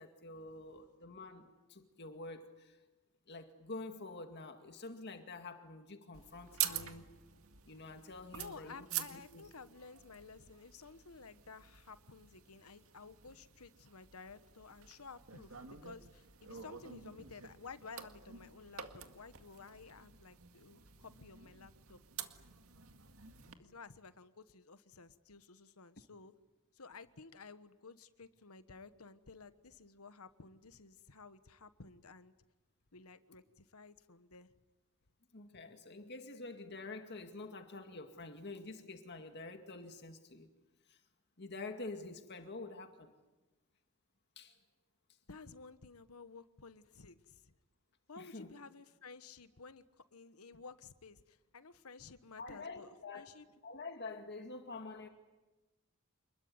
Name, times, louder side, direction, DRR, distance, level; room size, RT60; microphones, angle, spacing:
voice 1, 0.0-2.8 3.3-7.1 7.7-9.4 35.3-40.5 40.9-41.0 41.4-43.1 44.4-44.6 48.2-48.5 52.4-53.3 53.6-55.1, left 3 dB, 50° left, 6 dB, 2.1 m, -47 dB
sound 1, 6.1-23.5, right 11 dB, 75° right, 2.0 m, -47 dB
voice 2, 8.3-22.0 23.6-26.3 26.7-32.3 32.9-34.5 45.3-47.5 48.1-53.5, left 4 dB, 80° left, 12 dB, 1.3 m, -54 dB
27.5 x 21.0 x 9.7 m, 1.1 s
head